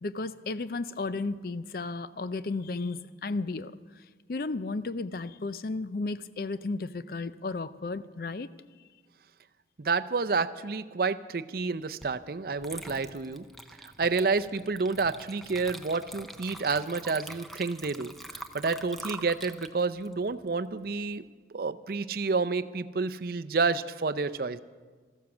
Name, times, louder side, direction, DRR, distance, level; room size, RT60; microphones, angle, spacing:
voice 1, 0.0-8.5, left 3 dB, 55° left, 15 dB, 0.5 m, -34 dB
voice 2, 9.8-13.4 13.8-21.2 21.5-24.6, right 4 dB, 55° right, 12 dB, 0.5 m, -29 dB
Water / Liquid, 12.0-12.2 12.6-21.1, right 1 dB, ahead, 0.6 m, -45 dB
14.0 x 12.5 x 7.2 m, 1.5 s
head